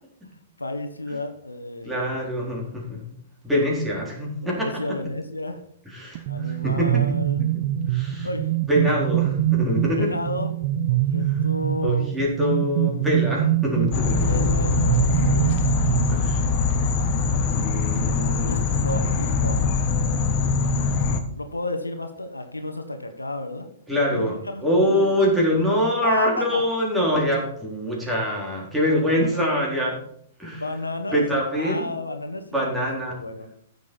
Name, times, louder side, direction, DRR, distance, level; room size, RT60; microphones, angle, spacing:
voice 1, 0.6-2.2 3.6-3.8 4.4-5.6 6.3-7.4 8.2-8.5 9.8-10.5 10.9-12.1 14.3-15.8 18.4-19.6 21.4-23.7 24.1-25.1 25.8-26.6 29.2-29.4 30.6-31.2 31.5-33.5, left 2 dB, 90° left, 7 dB, 1.3 m, -32 dB
voice 2, 1.8-3.1 3.4-5.0 5.9-7.0 7.9-8.3 8.7-10.1 11.3-11.4 11.8-14.3 16.1-16.4 17.4-18.7 19.0-19.2 23.9-24.3 24.6-30.0 30.4-30.6 31.1-31.9 32.5-33.1, equal, 5° right, -3 dB, 3.9 m, -24 dB
sound 1, 6.1-16.6, right 13 dB, 45° right, 0.7 m, -24 dB
sound 2, 13.9-21.2, left 4 dB, 40° left, 1.3 m, -22 dB
15.0 x 6.7 x 4.3 m, 0.67 s
figure-of-eight pair, 110°, 0 cm